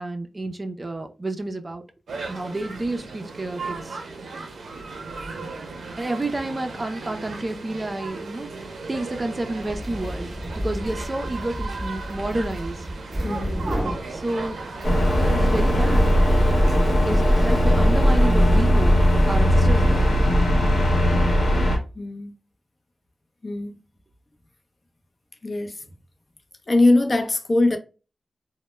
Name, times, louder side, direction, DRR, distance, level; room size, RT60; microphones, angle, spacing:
voice 1, 0.0-1.8 2.3-4.0 6.0-10.3 10.6-12.9 14.1-14.6 15.1-16.1 17.1-20.2, right 2 dB, 35° right, 0.4 m, -30 dB
sound 1, 2.1-18.6, right 3 dB, 90° right, 0.5 m, -36 dB
sound 2, 9.5-19.5, equal, 5° right, 0.7 m, -33 dB
voice 2, 13.2-13.8 22.0-22.3 23.4-23.7 25.4-25.8 26.7-27.8, left 2 dB, 45° left, 0.5 m, -21 dB
sound 3, 14.8-21.8, equal, 75° left, 0.9 m, -18 dB
2.1 x 2.0 x 3.0 m
cardioid pair, 65°, 0 cm